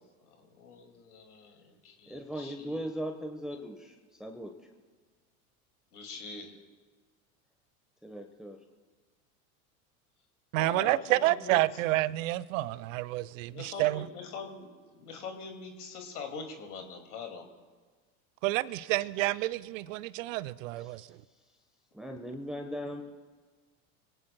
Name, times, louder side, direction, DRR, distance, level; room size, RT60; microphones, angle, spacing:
voice 1, 0.3-2.9 5.9-6.5 10.6-11.6 13.5-17.4, left 5 dB, 80° left, 2.5 m, -44 dB
voice 2, 2.1-3.9 4.2-4.5 8.0-8.6 20.8-21.1 21.9-23.0, equal, ahead, 1.1 m, -38 dB
voice 3, 10.5-14.1 18.4-21.2, right 17 dB, 60° right, 0.7 m, -29 dB
25.0 x 18.0 x 2.3 m
hypercardioid pair, 80°, 44 cm